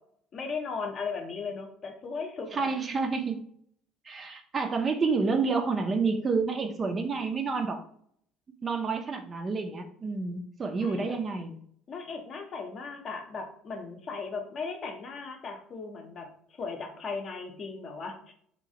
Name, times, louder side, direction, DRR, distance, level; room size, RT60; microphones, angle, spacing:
voice 1, 0.3-2.7 10.8-11.2 11.9-16.3 16.6-18.3, left 4 dB, 40° left, 3 dB, 0.6 m, -37 dB
voice 2, 2.5-3.4 4.1-7.8 8.6-11.6, right 4 dB, 30° right, 5 dB, 0.4 m, -29 dB
2.9 x 2.3 x 2.7 m, 0.63 s
figure-of-eight pair, 60°, 0 cm